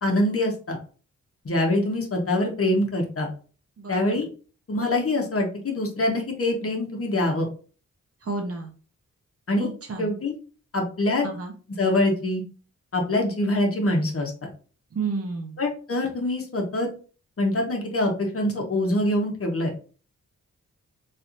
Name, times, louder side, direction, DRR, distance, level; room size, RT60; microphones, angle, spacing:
voice 1, 0.0-0.8 1.4-3.3 3.9-4.3 4.7-7.5 9.5-9.7 10.0-10.3 10.7-11.2 11.8-12.4 12.9-14.5 15.6-16.9 17.4-19.7, left 1 dB, 45° left, 1 dB, 1.1 m, -24 dB
voice 2, 3.8-4.2 8.2-8.7 9.6-10.1 11.2-11.5 14.9-15.6, right 4 dB, 50° right, 3 dB, 0.9 m, -31 dB
3.3 x 2.9 x 2.6 m, 0.38 s
cardioid pair, 70°, 31 cm